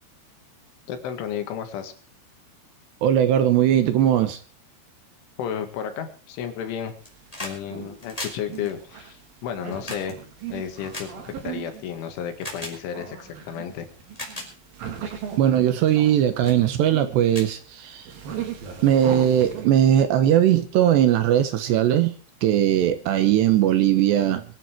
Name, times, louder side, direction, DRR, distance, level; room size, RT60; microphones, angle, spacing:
voice 1, 0.9-1.9 5.4-6.9 7.4-10.2 10.5-13.9, left 8 dB, 75° left, 4.2 m, -32 dB
voice 2, 3.0-4.4 14.8-15.0 15.4-18.1 18.8-22.1 22.4-24.4, right 11 dB, 70° right, 3.0 m, -19 dB
sound 1, 6.9-7.6 7.9-11.8 12.4-12.8 13.5-13.6 14.0-14.5 15.1-15.3 15.9-16.1 16.4-16.6 17.0-17.1 17.3-18.2 19.4-19.5, left 1 dB, 10° left, 4.0 m, -38 dB
sound 2, 7.1-19.8, right 8 dB, 55° right, 3.6 m, -39 dB
24.0 x 9.3 x 4.6 m
omnidirectional pair, 5.7 m